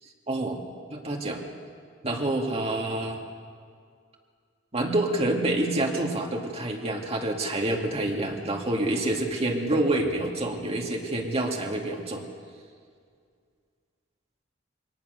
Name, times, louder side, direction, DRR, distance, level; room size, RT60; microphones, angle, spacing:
voice 1, 0.3-0.6 0.9-1.4 2.0-3.2 4.7-12.2, right 1 dB, 30° right, 1 dB, 2.4 m, -27 dB
22.5 x 19.0 x 6.7 m, 2.1 s
head